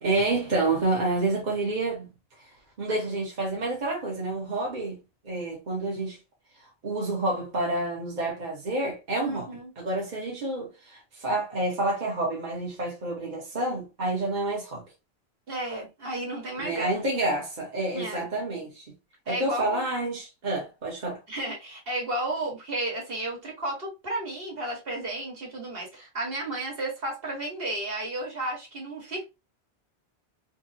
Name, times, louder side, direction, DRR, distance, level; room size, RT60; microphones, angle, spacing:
voice 1, 0.0-2.1 2.8-5.0 5.2-6.2 6.8-9.5 9.8-14.8 16.6-18.8 19.3-21.2, right 2 dB, 45° right, 1.0 m, -28 dB
voice 2, 9.2-9.7 15.5-16.9 17.9-18.3 19.2-19.8 21.3-29.2, right 1 dB, 65° right, 1.5 m, -33 dB
3.6 x 2.0 x 2.6 m
omnidirectional pair, 1.1 m